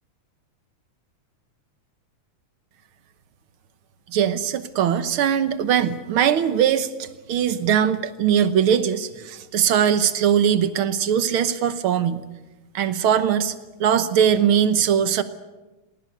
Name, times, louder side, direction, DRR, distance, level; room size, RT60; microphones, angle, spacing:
voice 1, 4.1-12.2 12.7-13.5 13.8-15.2, right 8 dB, 65° right, 12 dB, 1.4 m, -21 dB
19.0 x 19.0 x 9.3 m, 1.1 s
omnidirectional pair, 3.5 m